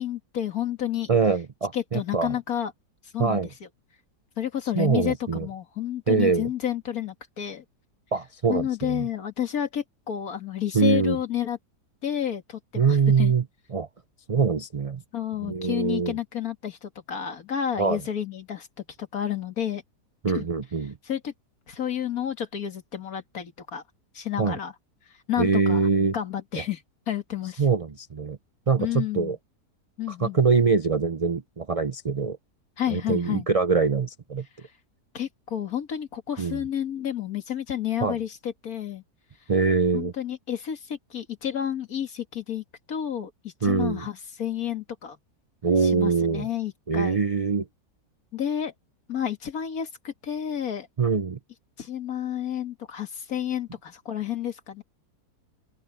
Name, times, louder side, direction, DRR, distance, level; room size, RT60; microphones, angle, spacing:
voice 1, 0.0-1.1 1.7-2.7 3.1-3.4 4.4-7.6 8.5-11.6 12.0-13.3 15.1-19.8 20.3-20.5 21.0-21.3 21.7-23.8 24.1-24.7 25.3-27.6 28.8-29.4 30.0-30.4 32.8-33.5 35.1-39.0 39.9-45.2 45.8-47.2 48.3-48.7 49.1-50.9 51.8-54.8, left 10 dB, 60° left, 2.2 m, -30 dB
voice 2, 1.1-2.3 3.2-3.5 4.7-5.5 6.1-6.5 8.1-9.1 10.7-11.2 12.7-13.4 13.7-13.9 14.3-15.0 15.4-16.1 17.8-18.0 20.2-21.0 24.4-24.6 25.4-26.2 27.6-28.4 28.7-29.4 30.1-32.4 32.9-34.4 36.4-36.6 38.0-38.2 39.5-40.1 43.6-44.1 45.6-46.5 46.9-47.7 51.0-51.4, right 5 dB, 65° right, 0.3 m, -23 dB
open air
omnidirectional pair, 1.7 m